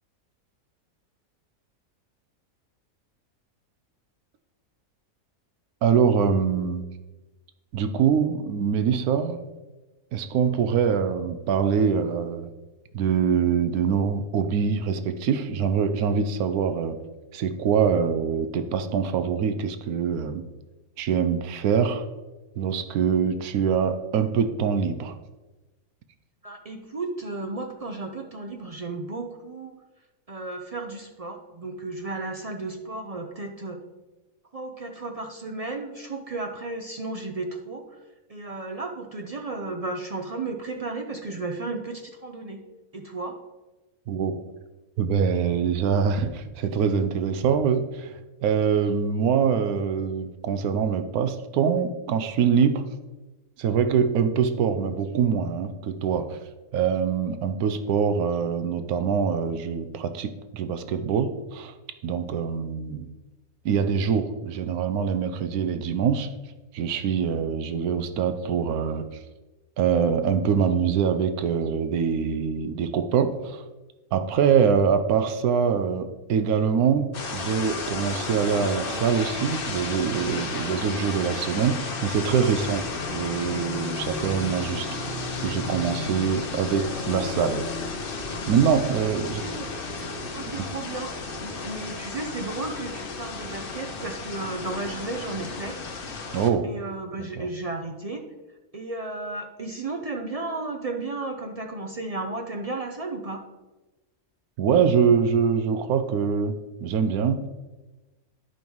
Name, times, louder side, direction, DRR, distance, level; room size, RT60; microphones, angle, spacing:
voice 1, 5.8-6.9 7.7-9.4 10.1-12.5 12.9-17.0 17.3-20.4 21.0-22.1 22.6-25.2 44.1-44.3 45.0-52.9 53.6-56.4 56.7-61.7 62.0-63.1 63.6-66.3 66.7-69.2 69.8-73.6 74.1-87.7 88.5-89.4 90.6-90.7 96.3-96.7 97.4-97.5 104.6-107.5, right 7 dB, 85° right, 9 dB, 1.1 m, -24 dB
voice 2, 26.4-29.8 30.3-33.8 34.5-38.0 38.3-42.6 42.9-43.4 89.4-89.7 90.3-95.8 96.6-98.2 98.7-103.4, right 3 dB, 65° right, 3 dB, 0.3 m, -34 dB
sound 1, 77.1-96.5, left 3 dB, 45° left, 1.0 m, -33 dB
10.5 x 5.4 x 4.5 m, 1.1 s
omnidirectional pair, 1.5 m